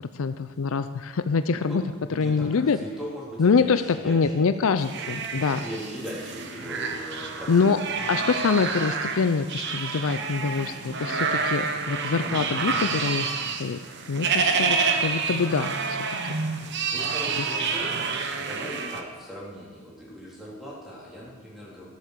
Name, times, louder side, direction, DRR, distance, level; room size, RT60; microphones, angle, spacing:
voice 1, 0.1-1.8 2.1-2.8 3.4-5.6 7.5-7.8 8.1-13.8 14.1-16.0 17.4-17.5, left 5 dB, 65° left, 11 dB, 0.5 m, -25 dB
voice 2, 1.5-1.8 2.1-4.5 5.6-7.7 16.9-18.0 18.3-21.9, equal, ahead, -6 dB, 3.5 m, -39 dB
sound 1, 4.8-19.0, right 5 dB, 50° right, 1.0 m, -28 dB
13.5 x 8.2 x 6.7 m, 1.5 s
head